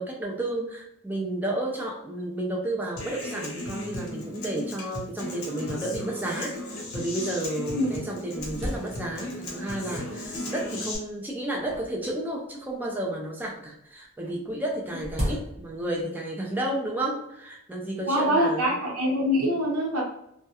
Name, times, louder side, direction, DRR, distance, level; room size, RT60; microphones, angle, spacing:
voice 1, 0.0-18.7, right 1 dB, 10° right, -2 dB, 0.3 m, -32 dB
Human voice / Acoustic guitar, 3.0-11.0, left 1 dB, 80° left, 0.7 m, -36 dB
sound 1, 8.4-9.5 10.2-10.7 11.6-12.9 14.2-16.0, equal, 30° right, 0.7 m, -36 dB
voice 2, 18.1-20.0, equal, 85° right, -4 dB, 0.9 m, -24 dB
2.2 x 2.1 x 2.8 m, 0.76 s
head